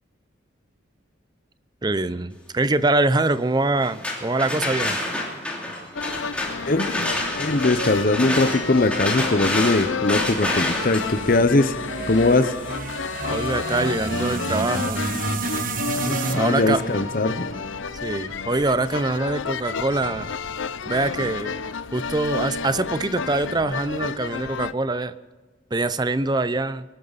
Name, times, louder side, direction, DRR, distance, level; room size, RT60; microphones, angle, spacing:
voice 1, 1.8-5.0 13.3-15.0 16.0-16.8 18.0-20.3 20.9-21.5 21.9-25.1 25.7-26.8, right 2 dB, 20° right, 14 dB, 0.6 m, -24 dB
sound 1, 3.8-13.6, left 1 dB, 5° left, 2.8 m, -29 dB
sound 2, 6.0-24.7, left 5 dB, 85° left, 0.6 m, -31 dB
voice 2, 7.4-11.7 12.1-12.5 16.3-17.5, left 2 dB, 45° left, 12 dB, 0.9 m, -20 dB
sound 3, 10.0-18.4, right 3 dB, 45° right, 1.3 m, -31 dB
23.0 x 12.5 x 4.1 m, 1.4 s
head